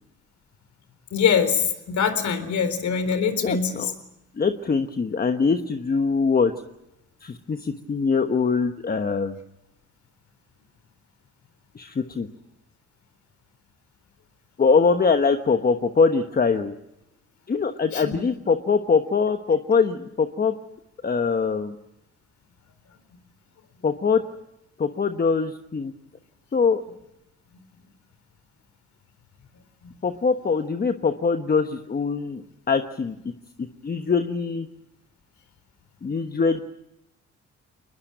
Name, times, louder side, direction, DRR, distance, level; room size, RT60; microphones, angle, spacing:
voice 1, 1.1-3.9 17.9-18.1, left 6 dB, 70° left, 10 dB, 4.0 m, -23 dB
voice 2, 3.4-3.9 4.4-6.5 7.2-9.4 11.7-12.3 14.6-16.7 17.5-20.5 21.0-21.8 23.8-24.2 24.8-25.9 26.5-26.8 30.0-33.2 33.8-34.7 36.0-36.6, left 5 dB, 30° left, 7 dB, 1.2 m, -23 dB
23.0 x 21.0 x 9.1 m, 0.87 s
cardioid pair, 90°, 30 cm